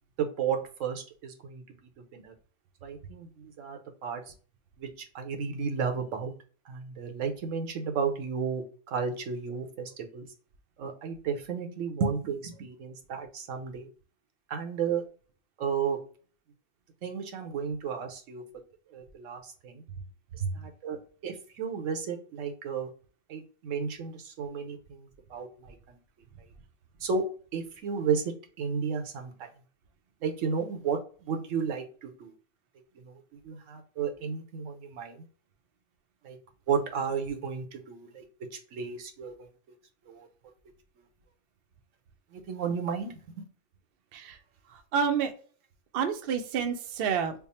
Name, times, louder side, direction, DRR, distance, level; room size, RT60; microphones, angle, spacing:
voice 1, 0.2-1.6 2.1-2.3 2.8-4.2 4.8-4.9 5.1-6.3 6.7-10.3 10.8-13.9 14.5-15.0 15.6-16.0 17.0-18.4 18.9-19.8 20.5-21.0 21.2-22.9 23.3-26.0 27.0-27.2 27.5-28.2 28.6-29.5 30.2-31.0 31.3-32.3 33.0-33.2 33.4-35.2 36.2-36.4 36.7-38.2 38.7-39.5 40.1-40.3 42.3-43.1, right 6 dB, 85° right, 4 dB, 1.1 m, -33 dB
voice 2, 44.7-45.3 45.9-47.3, right 7 dB, 60° right, 6 dB, 0.7 m, -29 dB
3.5 x 2.0 x 4.0 m, 0.41 s
omnidirectional pair, 1.3 m